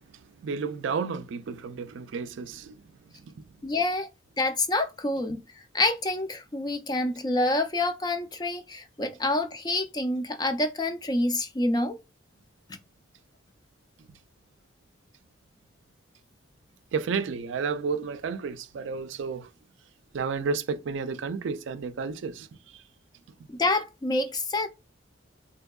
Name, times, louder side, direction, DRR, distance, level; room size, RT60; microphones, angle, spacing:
voice 1, 0.4-2.8 3.3-3.4 16.9-19.5 20.1-22.5, right 5 dB, 75° right, 0.4 m, -31 dB
voice 2, 3.6-4.1 4.4-5.4 5.7-12.0 23.5-24.7, left 2 dB, 20° left, 0.3 m, -27 dB
3.6 x 2.7 x 2.3 m
head